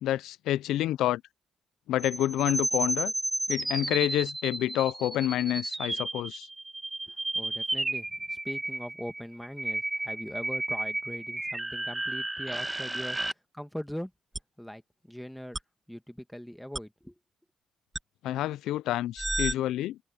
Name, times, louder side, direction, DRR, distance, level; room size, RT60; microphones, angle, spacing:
voice 1, 0.0-1.2 1.9-3.1 3.5-6.5 18.2-20.0, left 13 dB, 85° left, 0.3 m, -28 dB
sound 1, 2.0-13.3 14.3-14.4 15.5-15.6 16.7-16.8 18.0-18.1 19.2-19.5, right 2 dB, 15° right, 1.2 m, -32 dB
voice 2, 7.1-13.2 13.5-14.1 14.6-15.6 15.9-17.1, equal, 5° left, 1.7 m, -41 dB
cardioid pair, 90°, 0 cm